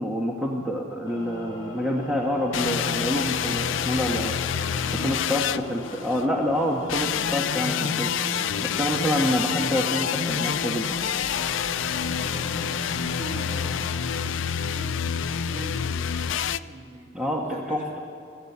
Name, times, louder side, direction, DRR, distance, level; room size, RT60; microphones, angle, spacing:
voice 1, 0.0-4.4 5.0-8.1 8.6-10.9 17.1-18.0, equal, 5° right, -1 dB, 1.5 m, -27 dB
sound 1, 1.0-13.9, equal, 25° left, 4.1 m, -38 dB
sound 2, 2.5-6.3 6.9-16.6, left 8 dB, 70° left, 0.5 m, -27 dB
voice 2, 4.7-5.2 11.9-17.1 17.4-18.0, right 1 dB, 40° right, -1 dB, 3.8 m, -42 dB
21.5 x 15.5 x 8.1 m, 2.7 s
head